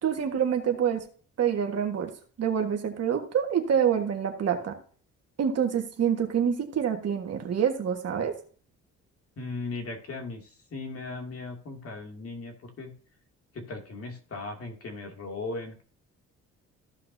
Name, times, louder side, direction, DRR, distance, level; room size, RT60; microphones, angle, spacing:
voice 1, 0.0-1.0 1.4-2.1 2.4-4.7 5.4-8.3, right 8 dB, 55° right, 4 dB, 1.6 m, -26 dB
voice 2, 9.4-12.9 13.5-15.8, left 3 dB, 50° left, 3 dB, 2.4 m, -38 dB
14.5 x 5.8 x 2.7 m, 0.43 s
cardioid pair, 90°, 30 cm